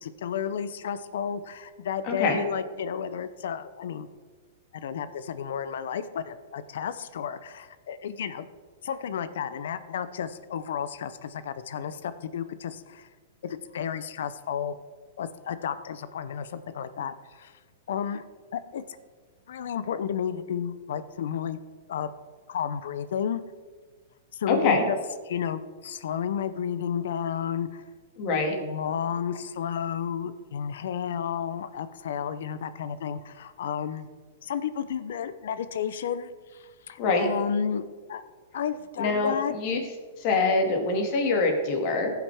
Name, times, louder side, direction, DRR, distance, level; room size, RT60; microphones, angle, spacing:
voice 1, 0.0-4.1 4.7-8.5 8.8-13.1 13.4-14.8 15.2-17.5 17.9-18.2 18.5-18.8 19.5-21.6 21.9-22.1 22.5-23.4 24.3-25.0 25.3-27.8 28.6-34.1 34.4-37.8 38.1-38.2 38.5-39.5, left 8 dB, 75° left, 13 dB, 0.6 m, -32 dB
voice 2, 2.0-2.4 24.5-24.8 28.2-28.5 37.0-37.3 39.0-39.8 40.2-42.1, left 3 dB, 45° left, 2 dB, 2.1 m, -24 dB
15.5 x 5.8 x 3.5 m, 1.4 s
hypercardioid pair, 135°, 0 cm